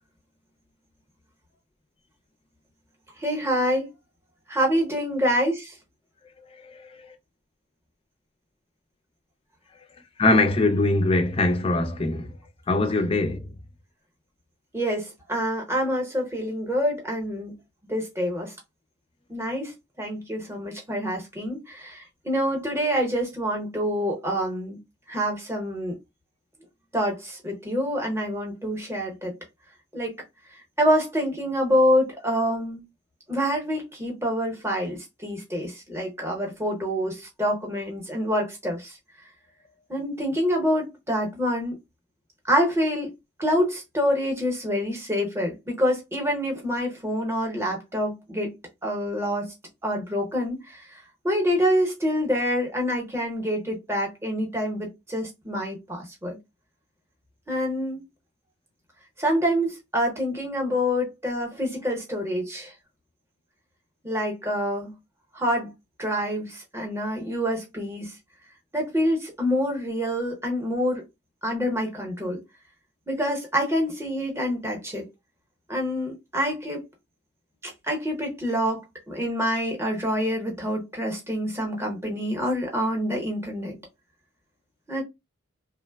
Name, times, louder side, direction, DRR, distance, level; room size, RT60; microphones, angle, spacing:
voice 1, 3.2-3.9 4.5-5.8 14.7-17.5 17.8-18.5 19.3-24.8 25.1-25.9 26.9-29.4 29.9-30.1 30.8-32.8 33.3-39.0 39.9-41.8 42.4-43.1 43.4-48.5 48.8-49.5 49.8-56.4 57.5-58.0 59.2-62.7 64.0-64.9 65.3-65.7 66.0-68.1 68.7-71.0 71.4-72.4 73.1-75.0 75.7-76.8 77.6-83.8 84.9-85.0, equal, 10° right, 0.8 m, -26 dB
voice 2, 6.5-7.0 10.2-12.3 12.7-13.5, left 2 dB, 25° left, 0.4 m, -22 dB
3.1 x 2.1 x 2.2 m
head